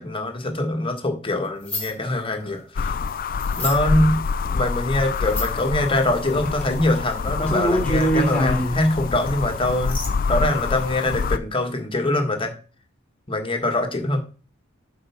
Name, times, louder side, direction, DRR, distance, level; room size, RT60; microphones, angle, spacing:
voice 1, 0.0-2.9 3.6-4.2 4.5-10.0 10.3-12.5 13.3-14.2, left 1 dB, 25° left, 4 dB, 1.6 m, -23 dB
sound 1, 1.7-1.9 3.4-3.8 5.3-5.6 6.4-6.7 6.9-7.0 7.4-8.8 9.3-9.4 9.9-10.1, right 1 dB, 5° left, 2.7 m, -24 dB
sound 2, 2.8-11.4, left 5 dB, 45° left, 0.4 m, -26 dB
7.9 x 4.7 x 5.8 m, 0.37 s
head